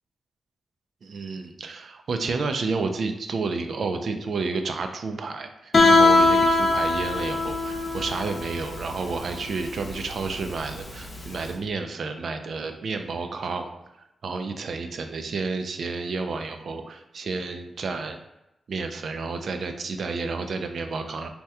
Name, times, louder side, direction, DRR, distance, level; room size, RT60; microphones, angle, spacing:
voice 1, 1.0-13.7 14.2-18.2 18.7-21.3, right 4 dB, 70° right, 6 dB, 0.3 m, -30 dB
Guitar, 5.7-11.4, left 3 dB, 45° left, 0.6 m, -21 dB
2.8 x 2.2 x 3.4 m, 0.89 s
cardioid pair, 85°, 0 cm